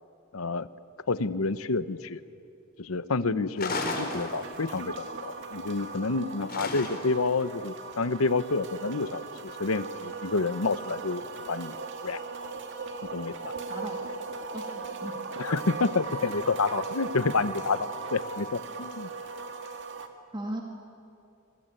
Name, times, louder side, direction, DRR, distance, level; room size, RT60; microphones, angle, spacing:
voice 1, 0.3-0.7 1.1-2.2 2.8-11.8 12.0-12.2 13.1-13.5 15.4-19.1, left 3 dB, 85° left, 14 dB, 0.9 m, -29 dB
sound 1, 3.6-4.8 6.5-7.3, left 3 dB, 45° left, 4.0 m, -33 dB
sound 2, 4.0-20.1, right 4 dB, 60° right, 2.1 m, -38 dB
voice 2, 13.7-14.0 14.5-15.1 16.2-16.3 20.3-20.6, right 1 dB, 20° right, 1 dB, 2.0 m, -37 dB
27.5 x 23.0 x 9.1 m, 2.6 s
head